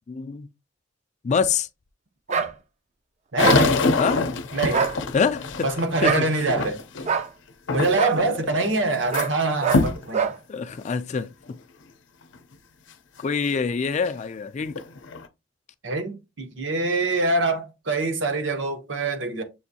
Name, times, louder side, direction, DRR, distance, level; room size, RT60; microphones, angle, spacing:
voice 1, 0.1-0.5 1.2-1.7 4.0-4.3 5.1-5.7 6.0-6.2 8.2-8.3 10.5-11.6 13.2-14.8, left 5 dB, 40° left, 0.3 m, -25 dB
sound 1, 2.3-2.5 3.4-3.6 4.7-5.0 6.0-6.3 7.0-7.3 7.9-8.2 9.1-9.3 9.6-9.8 10.1-10.4, right 6 dB, 35° right, 0.4 m, -24 dB
voice 2, 3.3-3.9 4.5-5.0 5.6-6.8 7.7-10.3 15.8-19.4, right 2 dB, 80° right, 1.0 m, -25 dB
sound 2, 3.4-7.1 7.7-8.2 8.6-9.3 9.7-10.0 10.7-10.8 11.5-11.6 14.1-14.2 14.7-15.3, left 3 dB, 85° left, 0.6 m, -24 dB
7.0 x 2.6 x 2.7 m
head